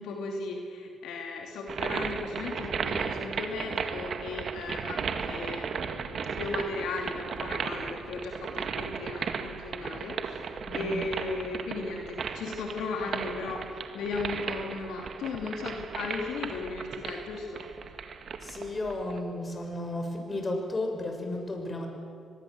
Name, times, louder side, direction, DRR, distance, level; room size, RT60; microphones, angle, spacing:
voice 1, 0.0-13.6 13.9-17.7, left 3 dB, 80° left, 1 dB, 2.9 m, -36 dB
sound 1, 1.7-19.2, right 6 dB, 60° right, 2.0 m, -35 dB
voice 2, 5.0-5.6 10.6-11.0 18.4-21.9, left 2 dB, 30° left, 3 dB, 6.7 m, -34 dB
24.0 x 21.0 x 8.0 m, 2.3 s
supercardioid pair, 65°, 0 cm